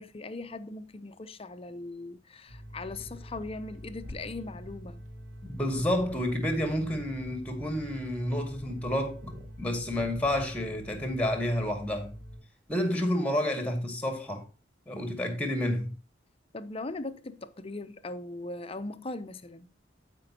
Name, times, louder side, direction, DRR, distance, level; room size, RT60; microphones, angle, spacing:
voice 1, 0.0-5.0 16.5-19.7, left 2 dB, 30° left, 0.7 m, -39 dB
sound 1, 2.5-12.4, equal, 60° right, 4.0 m, -45 dB
sound 2, 2.8-11.1, left 1 dB, 45° right, 2.0 m, -50 dB
voice 2, 5.4-9.2 9.6-12.1 12.7-14.5 14.9-15.9, left 1 dB, 5° left, 2.0 m, -30 dB
14.5 x 5.3 x 2.9 m
head